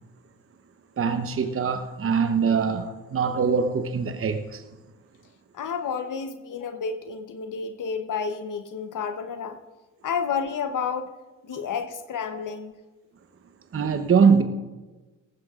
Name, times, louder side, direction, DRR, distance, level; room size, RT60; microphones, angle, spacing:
voice 1, 1.0-4.6 13.7-14.4, right 6 dB, 35° right, 0.9 m, -22 dB
voice 2, 5.5-9.6 10.0-11.1 11.4-12.8, left 6 dB, 60° left, 1.0 m, -30 dB
18.5 x 15.0 x 2.5 m
supercardioid pair, 50°, 36 cm